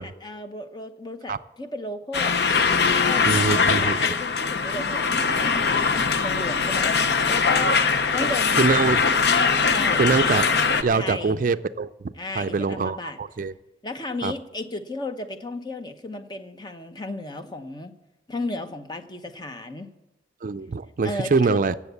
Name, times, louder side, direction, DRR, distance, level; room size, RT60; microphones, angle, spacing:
voice 1, 0.2-2.4 2.8-5.9 6.2-7.8 8.1-8.7 9.7-10.0 10.9-11.4 12.2-13.2 13.8-18.0 18.3-19.9 21.0-21.6, left 2 dB, 25° left, 8 dB, 0.8 m, -34 dB
sound 1, 2.1-10.8, left 5 dB, 70° left, 0.7 m, -21 dB
voice 2, 3.3-4.0 8.6-9.0 10.0-10.4 10.8-11.9 12.3-13.5 14.2-14.3 20.4-21.7, right 4 dB, 50° right, 13 dB, 0.4 m, -23 dB
15.0 x 7.3 x 8.3 m, 0.97 s
head